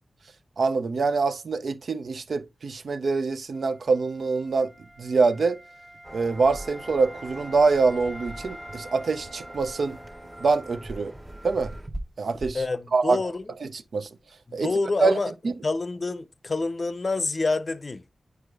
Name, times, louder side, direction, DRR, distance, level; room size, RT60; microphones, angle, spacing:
voice 1, 0.6-4.7 5.0-5.6 6.1-10.0 10.4-11.1 11.4-11.7 12.2-12.6 12.9-13.2 13.6-14.1 14.5-14.7 15.0-15.2 15.4-15.6, right 4 dB, 75° right, 0.5 m, -24 dB
Wind instrument woodwind instrument, 3.5-11.3, equal, 5° right, 1.2 m, -46 dB
sound 1, 4.0-4.1 4.4-4.5 4.8-5.0 5.4-5.5 5.9-14.4, right 1 dB, 30° right, 0.8 m, -43 dB
sound 2, 6.0-11.9, right 1 dB, 45° right, 1.3 m, -43 dB
voice 2, 12.5-13.4 14.5-15.3 15.6-18.1, left 3 dB, 50° left, 0.5 m, -27 dB
9.3 x 4.8 x 2.3 m
cardioid pair, 45°, 0 cm